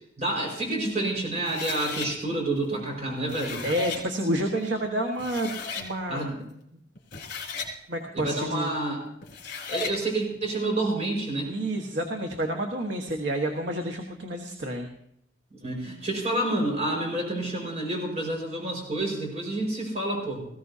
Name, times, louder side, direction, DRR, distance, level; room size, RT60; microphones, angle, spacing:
voice 1, 0.2-3.6 6.1-6.4 8.1-9.0 9.7-11.5 15.5-20.5, right 2 dB, 40° right, 0 dB, 5.1 m, -29 dB
sound 1, 1.4-2.1 3.1-4.0 4.8-4.9 5.2-5.9 6.9-7.7 9.2-10.0, left 4 dB, 60° left, 3.1 m, -35 dB
voice 2, 3.6-6.3 6.7-6.8 7.9-8.8 11.5-14.9, right 1 dB, 70° right, 3 dB, 1.5 m, -29 dB
19.5 x 15.5 x 2.8 m, 0.74 s
head